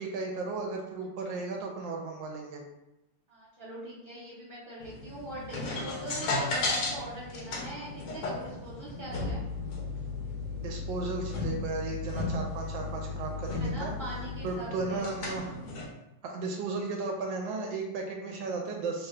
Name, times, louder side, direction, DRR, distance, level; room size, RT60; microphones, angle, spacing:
voice 1, 0.0-2.6 10.6-13.9 14.4-15.6 16.2-19.1, right 3 dB, 85° right, 1 dB, 1.3 m, -35 dB
voice 2, 3.3-9.4 13.6-15.1, right 1 dB, 50° right, -10 dB, 0.6 m, -42 dB
sound 1, 4.8-15.9, left 3 dB, 70° left, 1.2 m, -35 dB
3.2 x 2.2 x 3.6 m, 0.89 s
omnidirectional pair, 2.0 m